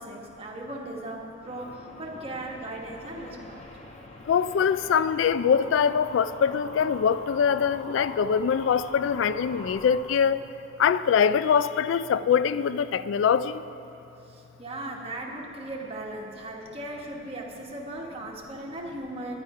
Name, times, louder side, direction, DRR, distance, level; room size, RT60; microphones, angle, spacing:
voice 1, 0.0-3.6 14.3-19.4, right 1 dB, 30° right, 1.3 m, -37 dB
sound 1, 1.4-10.0, left 1 dB, 40° left, 1.2 m, -44 dB
voice 2, 4.3-10.4 10.8-13.6, left 7 dB, 80° left, 0.3 m, -23 dB
11.0 x 9.7 x 5.5 m
head